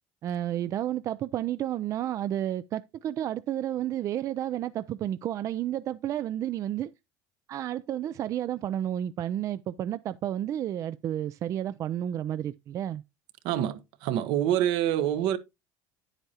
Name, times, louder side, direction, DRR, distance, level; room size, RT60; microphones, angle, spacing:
voice 1, 0.2-6.9 7.5-13.0, right 11 dB, 40° right, 0.4 m, -31 dB
voice 2, 13.4-15.4, right 11 dB, 70° right, 1.0 m, -26 dB
9.6 x 8.0 x 2.8 m
cardioid pair, 125°, 8 cm